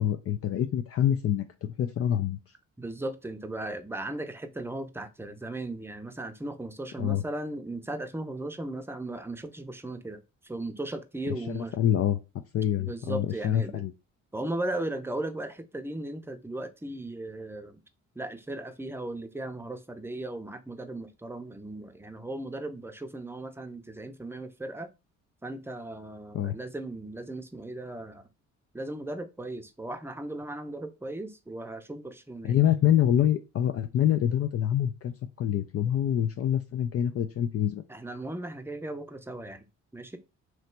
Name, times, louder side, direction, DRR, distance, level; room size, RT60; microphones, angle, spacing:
voice 1, 0.0-2.4 7.0-7.2 11.5-12.2 12.5-13.9 26.3-26.6 32.4-37.8, left 10 dB, 50° left, 0.4 m, -26 dB
voice 2, 2.8-11.7 12.8-13.8 14.3-17.8 18.2-24.9 25.4-28.2 28.7-32.6 37.9-39.6 39.9-40.2, right 1 dB, 10° right, 0.6 m, -37 dB
3.2 x 2.9 x 4.4 m
cardioid pair, 90°, 30 cm